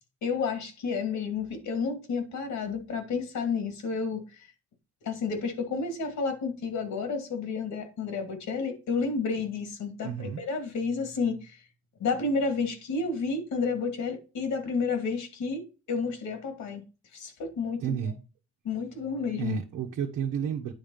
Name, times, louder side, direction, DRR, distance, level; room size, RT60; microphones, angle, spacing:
voice 1, 0.2-4.2 5.0-11.6 12.0-16.8 17.1-18.0 18.6-19.6, left 4 dB, 75° left, 2.5 m, -31 dB
voice 2, 10.0-10.4 17.8-18.2 19.4-20.7, right 8 dB, 80° right, 1.2 m, -31 dB
9.8 x 3.6 x 5.6 m
cardioid pair, 90°, 30 cm